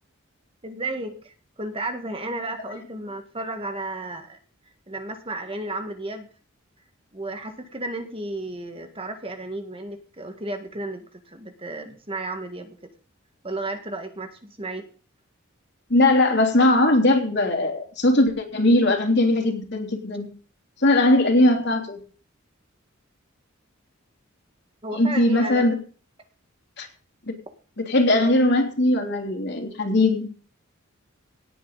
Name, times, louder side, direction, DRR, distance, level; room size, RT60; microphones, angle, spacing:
voice 1, 0.6-4.4 4.9-6.3 7.1-12.8 13.4-14.9 24.8-25.6, right 2 dB, 25° right, 6 dB, 1.8 m, -33 dB
voice 2, 15.9-20.3 20.8-22.0 24.9-25.8 26.8-26.9 27.3-27.4 27.8-30.3, left 1 dB, 55° left, 3 dB, 3.2 m, -20 dB
18.0 x 9.1 x 4.1 m, 0.40 s
head